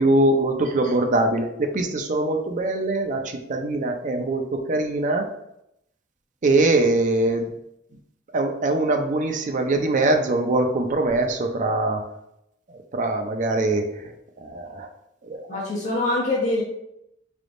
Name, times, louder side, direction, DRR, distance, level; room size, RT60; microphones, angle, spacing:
voice 1, 0.0-5.3 6.4-7.5 8.3-12.0 12.9-14.9 15.2-15.4, right 2 dB, 45° right, 5 dB, 0.5 m, -22 dB
voice 2, 15.5-16.6, left 2 dB, 40° left, -4 dB, 0.7 m, -24 dB
3.8 x 3.4 x 2.5 m, 0.81 s
head